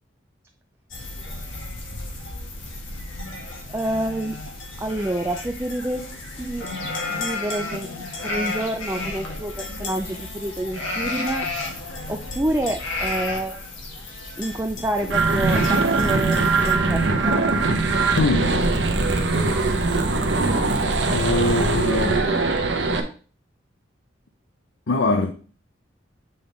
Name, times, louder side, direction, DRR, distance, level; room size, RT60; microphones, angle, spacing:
sound 1, 0.9-16.8, left 2 dB, 90° left, 1.6 m, -33 dB
voice 1, 3.7-4.4 4.8-6.1 6.4-6.7 7.1-7.9 8.2-11.5 12.1-13.5 14.4-17.4, right 1 dB, 10° right, 0.4 m, -28 dB
sound 2, 15.1-23.0, right 3 dB, 70° right, 0.9 m, -21 dB
voice 2, 18.2-18.6 21.1-22.2 24.9-25.3, left 2 dB, 70° left, 0.6 m, -22 dB
7.7 x 3.6 x 3.9 m
head